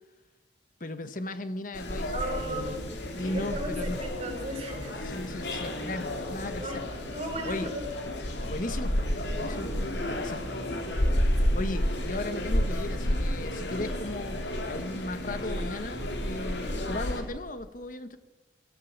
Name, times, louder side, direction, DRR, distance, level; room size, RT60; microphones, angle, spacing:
voice 1, 0.8-2.1 2.4-4.0 5.0-6.8 7.4-7.7 8.4-9.1 9.4-10.4 11.5-18.2, left 2 dB, 45° left, 11 dB, 1.1 m, -36 dB
sound 1, 1.7-17.2, left 1 dB, 70° left, 3.2 m, -31 dB
voice 2, 2.1-2.8 3.3-4.9 6.6-6.8 7.1-7.8 12.1-12.2 16.6-16.9, right 1 dB, 35° right, 3 dB, 5.2 m, -35 dB
24.5 x 15.0 x 7.2 m, 1.1 s
head